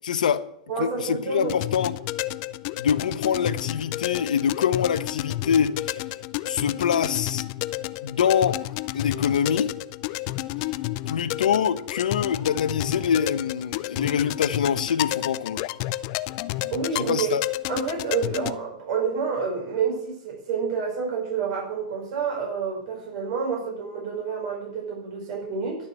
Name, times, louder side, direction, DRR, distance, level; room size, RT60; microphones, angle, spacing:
voice 1, 0.0-0.5 0.8-1.9 2.8-6.0 6.5-7.4 8.0-8.6 8.9-9.7 11.1-15.6 16.9-17.4, left 8 dB, 80° left, 0.9 m, -24 dB
voice 2, 0.7-1.5 16.7-17.3 17.6-25.9, right 6 dB, 50° right, 5.6 m, -28 dB
sound 1, 1.4-18.5, left 16 dB, 45° left, 0.5 m, -31 dB
11.5 x 6.7 x 8.4 m
hypercardioid pair, 130°, 4 cm